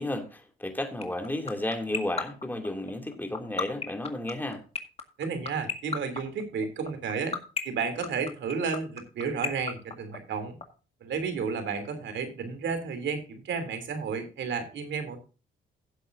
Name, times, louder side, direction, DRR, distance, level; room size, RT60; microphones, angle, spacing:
voice 1, 0.0-4.6, left 1 dB, 10° left, 2.5 m, -33 dB
sound 1, 1.0-10.6, left 5 dB, 30° left, 1.9 m, -30 dB
voice 2, 5.2-7.4 7.6-10.6 11.0-15.2, right 5 dB, 70° right, 2.9 m, -32 dB
16.0 x 7.7 x 2.6 m
cardioid pair, 90°, 20 cm